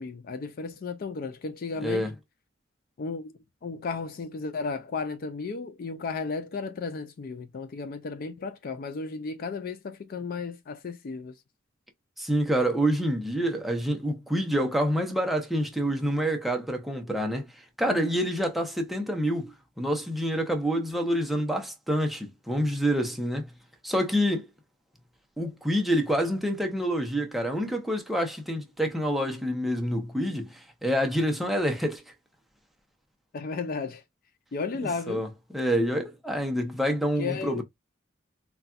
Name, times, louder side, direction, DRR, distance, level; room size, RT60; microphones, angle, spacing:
voice 1, 0.0-2.1 3.0-3.3 3.6-11.4 17.9-18.0 33.3-34.0 34.5-35.2 37.2-37.6, left 4 dB, 50° left, 0.4 m, -34 dB
voice 2, 1.8-2.1 12.2-17.5 17.8-23.5 23.8-24.5 25.4-32.0 35.1-35.3 35.5-37.6, equal, ahead, 0.7 m, -27 dB
4.0 x 2.3 x 2.3 m
head